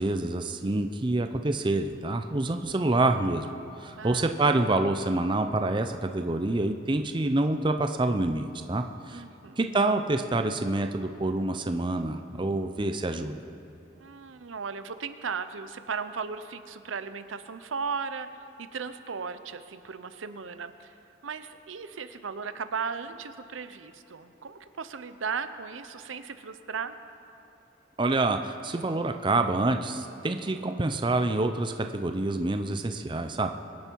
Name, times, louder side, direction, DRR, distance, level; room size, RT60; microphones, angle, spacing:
voice 1, 0.0-3.5 3.8-9.2 9.6-13.4 28.0-33.5, right 2 dB, 25° right, 7 dB, 0.5 m, -27 dB
voice 2, 4.0-4.6 9.1-9.6 14.0-18.3 18.6-20.9 21.2-27.0, right 5 dB, 90° right, 11 dB, 0.7 m, -36 dB
24.0 x 10.5 x 4.6 m, 2.8 s
head